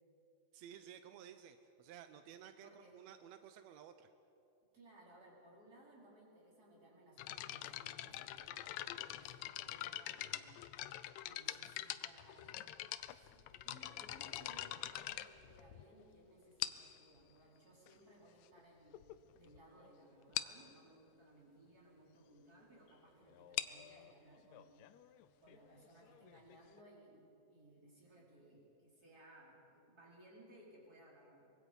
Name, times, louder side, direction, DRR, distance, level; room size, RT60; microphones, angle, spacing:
voice 1, 0.5-4.1, right 9 dB, 80° right, 9 dB, 1.6 m, -55 dB
voice 2, 2.6-3.0 4.7-10.7 11.2-19.0 19.3-24.7 25.4-27.2 27.5-31.6, right 1 dB, 25° right, -4 dB, 5.2 m, -62 dB
sound 1, 7.2-16.0 16.6-17.0 17.9-18.0 18.6-18.7 18.9-19.1 19.5-19.6 19.8-19.9 20.3-20.6 23.3-26.8, left 14 dB, 85° left, 1.5 m, -44 dB
24.0 x 23.0 x 5.5 m, 2.8 s
omnidirectional pair, 4.0 m